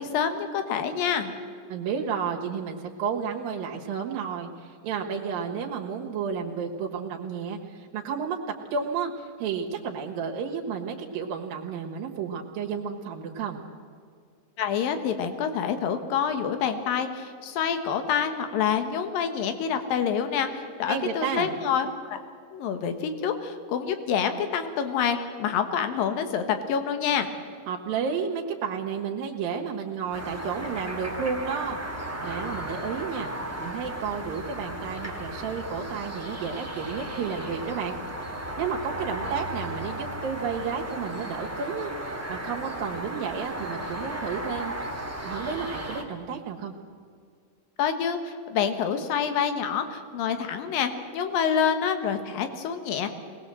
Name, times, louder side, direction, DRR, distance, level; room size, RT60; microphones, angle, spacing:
voice 1, 0.0-1.3 14.6-22.2 22.5-27.3 47.8-53.1, left 7 dB, 85° left, 8 dB, 3.1 m, -27 dB
voice 2, 1.7-8.4 8.7-13.6 20.9-21.5 27.7-31.8 32.2-33.3 33.6-38.0 38.6-44.7 45.2-46.7, right 6 dB, 90° right, 1 dB, 3.3 m, -32 dB
sound 1, 30.1-46.0, right 1 dB, 5° right, 1.3 m, -35 dB
22.5 x 19.0 x 7.7 m, 2.1 s
omnidirectional pair, 3.9 m